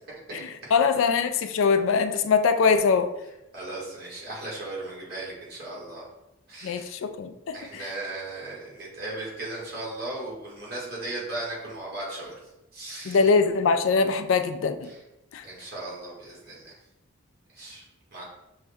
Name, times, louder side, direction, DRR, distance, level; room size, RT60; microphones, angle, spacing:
voice 1, 0.7-3.1 6.6-7.8 13.1-14.9 15.3-15.4, left 5 dB, 70° left, 8 dB, 0.3 m, -22 dB
voice 2, 3.5-6.0 6.5-6.9 7.5-12.3 12.7-13.3 14.8-15.0 15.4-16.8 17.5-17.8 18.1-18.2, right 2 dB, 45° right, -4 dB, 1.5 m, -37 dB
6.2 x 2.2 x 3.4 m, 0.90 s
head